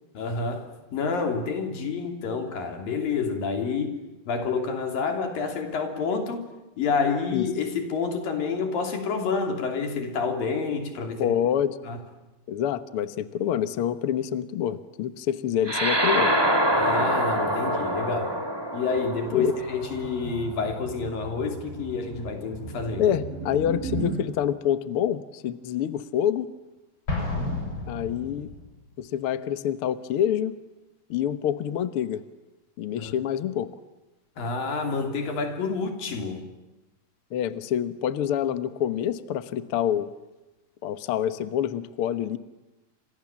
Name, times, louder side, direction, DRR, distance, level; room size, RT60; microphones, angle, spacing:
voice 1, 0.1-4.0 4.3-6.4 6.8-11.4 11.9-12.0 16.7-18.4 18.7-23.0 33.0-33.1 34.4-36.4, left 4 dB, 80° left, 5 dB, 5.0 m, -28 dB
voice 2, 11.2-11.8 12.5-16.3 19.3-19.5 23.0-26.5 27.9-28.5 29.0-30.5 31.1-32.2 32.8-33.7 37.3-40.1 40.8-42.4, left 10 dB, 65° left, 12 dB, 1.5 m, -27 dB
sound 1, 15.6-20.4, right 1 dB, 10° right, 2.4 m, -25 dB
sound 2, 19.0-24.2, right 3 dB, 85° right, 7.3 m, -37 dB
Explosion, 27.1-28.7, left 2 dB, 35° left, 8.1 m, -31 dB
30.0 x 26.5 x 7.4 m, 1.0 s
omnidirectional pair, 4.0 m